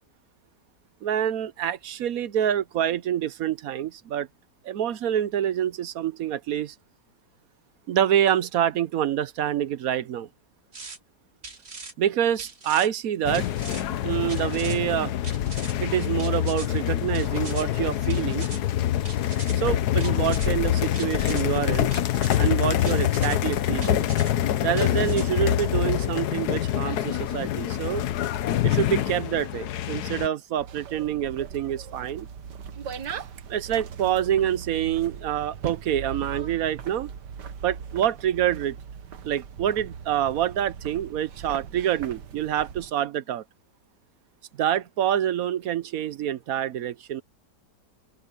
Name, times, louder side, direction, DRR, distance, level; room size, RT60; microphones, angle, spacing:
voice 1, 1.0-4.3 4.6-6.7 7.9-10.3 12.0-13.5 14.0-15.1 15.8-18.5 19.5-21.9 22.4-24.1 24.6-28.0 28.6-32.3 33.5-37.1 37.6-38.8 39.2-43.4 44.6-47.2, right 10 dB, 65° right, 1.1 m, -26 dB
sound 1, 10.7-11.0 11.4-11.9 12.4-12.9 13.3-13.8 14.3-14.8 15.2-15.7 16.2-16.7 17.1-17.7 18.1-18.6 19.1-19.6 20.0-20.5 21.0-21.4 21.9-22.4 22.9-23.4 23.8-24.3 24.8-25.3, right 3 dB, 40° right, 2.3 m, -41 dB
sound 2, 13.2-30.3, left 12 dB, 70° left, 1.3 m, -25 dB
sound 3, 30.6-42.9, right 7 dB, 80° right, 1.8 m, -39 dB
open air
omnidirectional pair, 1.8 m